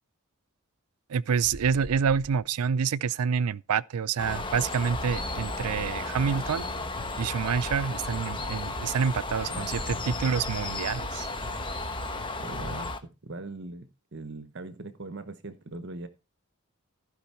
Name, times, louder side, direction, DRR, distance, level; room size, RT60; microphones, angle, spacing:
voice 1, 1.1-6.7 7.2-11.3, right 6 dB, 90° right, 0.5 m, -27 dB
sound 1, 1.4-2.4 4.6-6.2 10.4-12.0, right 1 dB, 15° right, 2.3 m, -45 dB
Bird, 4.2-13.0, left 2 dB, 20° left, 1.1 m, -34 dB
voice 2, 9.5-10.4 12.4-16.1, right 2 dB, 50° right, 1.0 m, -41 dB
15.0 x 5.3 x 4.2 m
head